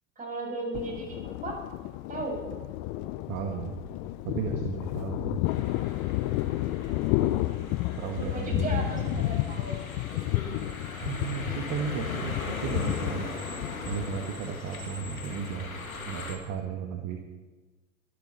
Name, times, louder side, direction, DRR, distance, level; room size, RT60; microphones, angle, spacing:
voice 1, 0.1-1.6 2.1-2.4 6.6-7.0 8.3-9.8, right 2 dB, 20° right, -1 dB, 6.9 m, -36 dB
Thunder, 0.7-15.5, left 17 dB, 40° left, 0.7 m, -32 dB
voice 2, 3.3-3.8 4.2-5.4 8.0-9.3 11.0-13.3 13.9-15.8 16.0-17.2, right 7 dB, 40° right, 4 dB, 1.7 m, -34 dB
sound 1, 5.5-16.4, left 3 dB, 85° left, 2.2 m, -40 dB
24.0 x 11.5 x 4.2 m, 1.2 s
figure-of-eight pair, 85°, 41 cm